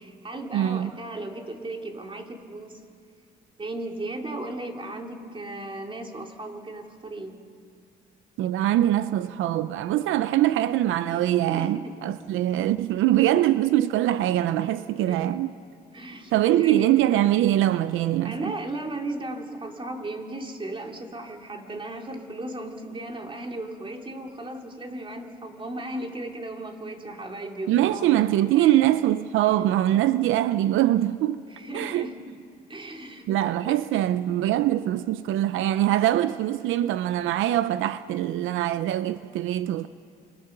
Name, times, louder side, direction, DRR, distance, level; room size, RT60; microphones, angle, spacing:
voice 1, 0.0-2.8 3.6-7.4 11.1-11.2 11.5-12.0 15.1-15.4 15.9-16.9 18.2-28.9 31.5-32.4 32.7-33.3 33.7-33.8, right 2 dB, 25° right, 3.0 m, -36 dB
voice 2, 0.5-0.9 8.4-15.5 16.3-18.5 27.7-31.4 31.7-32.1 33.3-39.9, right 13 dB, 85° right, 0.6 m, -23 dB
28.0 x 21.0 x 6.7 m
cardioid pair, 90°, 20 cm